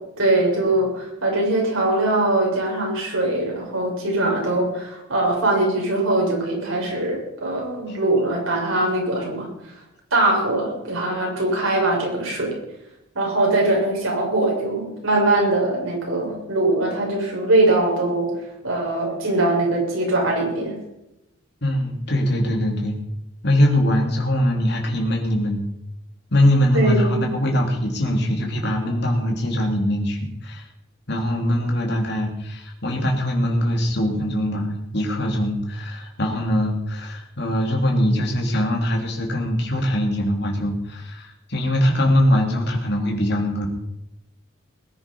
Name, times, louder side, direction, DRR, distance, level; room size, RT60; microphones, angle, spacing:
voice 1, 0.2-9.5 10.1-12.5 13.1-18.3 18.6-20.7 26.7-27.3, right 2 dB, 85° right, -1 dB, 6.7 m, -21 dB
voice 2, 21.6-23.0 23.4-25.6 26.3-30.7 31.1-43.7, left 1 dB, 55° left, 1 dB, 3.3 m, -22 dB
21.0 x 9.9 x 5.6 m, 0.88 s
head